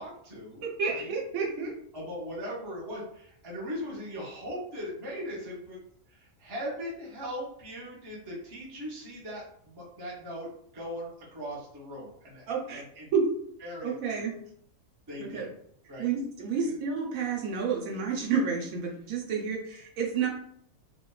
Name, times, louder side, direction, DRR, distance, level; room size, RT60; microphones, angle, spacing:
voice 1, 0.0-1.1 1.9-5.8 6.1-10.5 10.7-13.1 13.6-14.2 15.1-15.5 15.9-16.1 16.6-16.8, equal, 30° right, -4 dB, 0.4 m, -39 dB
voice 2, 0.6-1.7 12.5-12.8 13.1-13.3 13.8-14.3 15.2-15.4 16.0-20.3, right 5 dB, 75° right, -1 dB, 1.0 m, -30 dB
2.7 x 2.2 x 2.2 m, 0.67 s
omnidirectional pair, 1.5 m